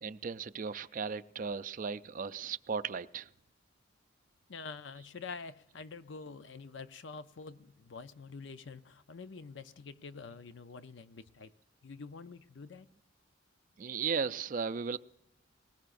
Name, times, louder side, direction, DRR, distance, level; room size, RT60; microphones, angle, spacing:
voice 1, 0.0-3.3 13.8-15.0, right 5 dB, 45° right, 0.4 m, -36 dB
voice 2, 4.5-11.5 11.8-12.9, left 4 dB, 65° left, 0.6 m, -47 dB
20.5 x 19.0 x 2.6 m
head